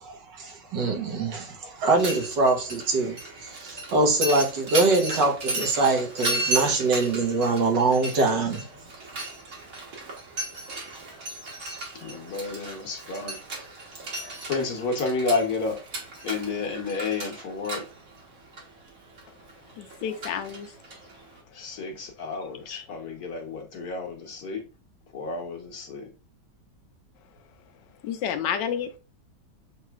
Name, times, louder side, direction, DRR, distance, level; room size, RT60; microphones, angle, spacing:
voice 1, 0.0-3.2 3.6-8.7, right 3 dB, 75° right, 1.8 m, -23 dB
Mechanisms, 1.8-21.4, right 2 dB, 50° right, 1.6 m, -35 dB
voice 2, 12.0-13.4 14.5-15.8 16.2-17.8 21.5-24.6 25.1-26.0, left 4 dB, 60° left, 1.5 m, -30 dB
voice 3, 19.8-20.7 22.7-22.8 28.0-29.0, left 8 dB, 80° left, 1.3 m, -30 dB
7.4 x 3.0 x 2.3 m
omnidirectional pair, 1.9 m